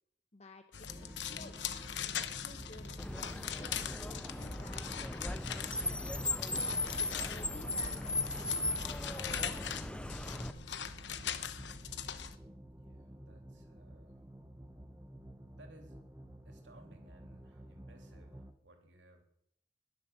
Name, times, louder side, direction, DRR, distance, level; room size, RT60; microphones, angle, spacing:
voice 1, 0.3-1.6 2.2-3.0 3.2-6.4 7.2-8.5 9.1-11.3, left 2 dB, 40° left, 7 dB, 1.0 m, -56 dB
sound 1, 0.7-12.4, left 8 dB, 80° left, 1.0 m, -41 dB
sound 2, 0.9-18.5, right 1 dB, 15° right, 1.1 m, -51 dB
Car, 3.0-10.5, left 2 dB, 5° left, 0.5 m, -37 dB
voice 2, 12.7-14.2 15.5-16.0 16.4-19.2, right 1 dB, 90° right, 4 dB, 3.1 m, -60 dB
21.0 x 7.5 x 6.8 m, 0.71 s
head